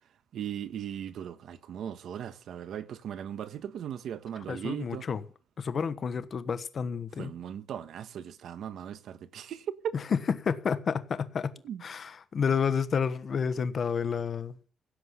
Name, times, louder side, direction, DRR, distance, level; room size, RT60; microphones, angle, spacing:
voice 1, 0.3-5.0 7.2-9.9 11.6-11.8, right 9 dB, 65° right, 1.3 m, -38 dB
voice 2, 4.4-5.2 5.6-7.3 9.9-11.5 11.8-14.6, left 6 dB, 40° left, 1.2 m, -30 dB
16.5 x 7.6 x 8.2 m
cardioid pair, 160°, 0 cm